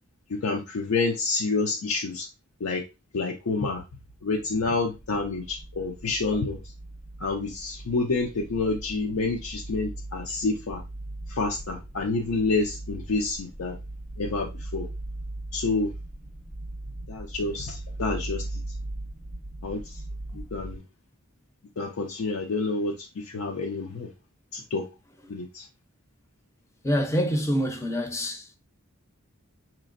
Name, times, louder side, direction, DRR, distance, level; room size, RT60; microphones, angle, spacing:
voice 1, 0.3-2.3 2.6-2.8 3.1-3.8 4.2-6.6 7.2-10.8 11.3-13.8 14.2-14.9 15.5-15.9 17.1-18.6 19.6-20.0 20.3-20.8 21.8-24.1 24.5-24.9 25.3-25.7, left 3 dB, 80° left, 0.5 m, -28 dB
sound 1, 4.0-20.8, right 1 dB, 30° right, 0.7 m, -39 dB
voice 2, 26.8-28.5, equal, 15° left, 0.6 m, -26 dB
4.1 x 3.0 x 2.5 m
head